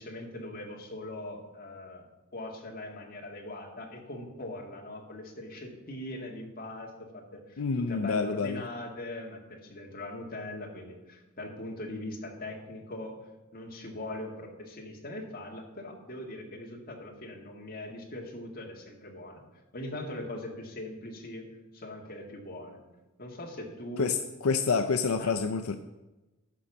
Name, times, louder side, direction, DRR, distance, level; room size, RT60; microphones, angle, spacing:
voice 1, 0.0-2.0 2.3-13.2 13.5-19.4 19.7-21.5 21.7-22.8 23.2-24.2 25.2-25.4, left 1 dB, 40° left, 0 dB, 1.9 m, -41 dB
voice 2, 7.6-8.6 24.0-24.2 24.4-25.8, left 5 dB, 75° left, 8 dB, 0.5 m, -27 dB
11.5 x 5.2 x 7.1 m, 1.1 s
head